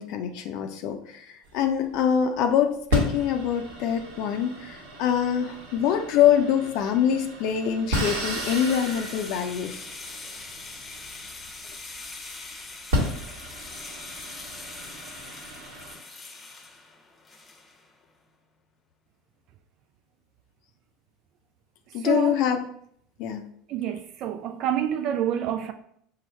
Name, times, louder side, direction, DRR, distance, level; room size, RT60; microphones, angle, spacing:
voice 1, 0.0-9.8 21.9-22.7 23.2-23.4, left 9 dB, 60° left, 0.4 m, -24 dB
sound 1, 1.4-2.2 2.9-12.0 12.5-12.6 12.9-15.9, equal, 70° right, 1.2 m, -33 dB
sound 2, 8.0-17.9, left 3 dB, 20° left, 0.7 m, -42 dB
voice 2, 22.0-22.3 23.7-25.7, right 10 dB, 50° right, 0.3 m, -27 dB
5.5 x 2.1 x 4.2 m
hypercardioid pair, 75°, 0 cm